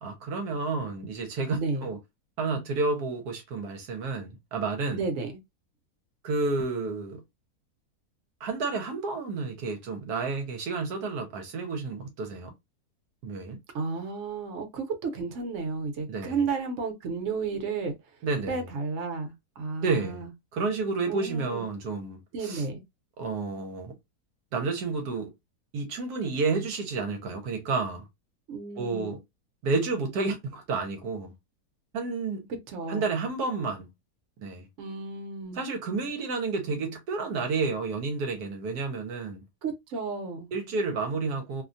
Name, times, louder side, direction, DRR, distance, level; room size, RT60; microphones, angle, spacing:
voice 1, 0.0-2.0 2.4-5.1 6.2-7.2 8.4-12.5 13.2-13.6 16.1-16.4 18.2-18.7 19.8-20.2 20.5-22.6 23.2-24.0 24.5-25.3 25.7-28.1 28.8-29.2 29.6-31.3 31.9-32.5 32.9-33.9 34.4-34.7 35.5-39.4 40.5-41.6, right 4 dB, 75° right, 1.2 m, -30 dB
voice 2, 1.5-1.9 4.9-5.4 13.7-17.9 18.5-20.3 21.1-21.6 22.3-22.8 28.5-29.2 32.5-33.1 34.8-35.6 39.6-40.5, right 4 dB, 55° right, 1.0 m, -32 dB
2.8 x 2.2 x 2.5 m
omnidirectional pair, 1.7 m